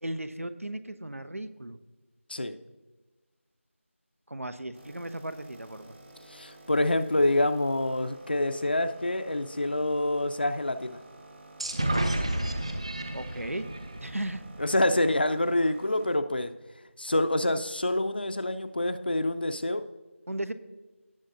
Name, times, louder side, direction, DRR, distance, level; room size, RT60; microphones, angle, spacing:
voice 1, 0.0-1.8 4.3-6.0 13.1-13.7 14.0-14.4 20.3-20.5, right 1 dB, 90° right, 12 dB, 0.9 m, -36 dB
sound 1, 4.7-16.2, right 2 dB, 55° right, 1.8 m, -51 dB
voice 2, 6.3-11.0 14.6-16.5 17.0-19.8, left 1 dB, 45° left, 10 dB, 0.6 m, -26 dB
sound 2, 11.6-15.3, right 1 dB, 25° right, 0.6 m, -31 dB
18.0 x 7.1 x 2.6 m, 1.2 s
figure-of-eight pair, 170°, 7 cm